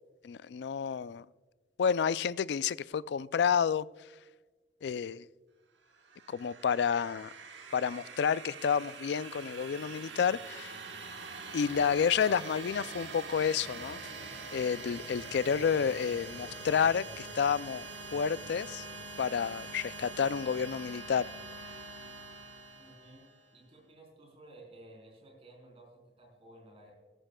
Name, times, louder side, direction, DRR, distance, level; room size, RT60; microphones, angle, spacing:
voice 1, 0.2-1.3 1.8-3.9 4.8-5.2 6.3-7.3 7.7-10.8 11.5-14.0 14.5-17.9 18.1-18.9 19.2-21.3, left 7 dB, 65° left, 0.3 m, -30 dB
sound 1, 5.9-23.5, right 3 dB, 80° right, 1.2 m, -44 dB
voice 2, 22.8-23.3 23.5-26.9, right 1 dB, 30° right, 4.0 m, -55 dB
16.0 x 14.0 x 2.3 m
head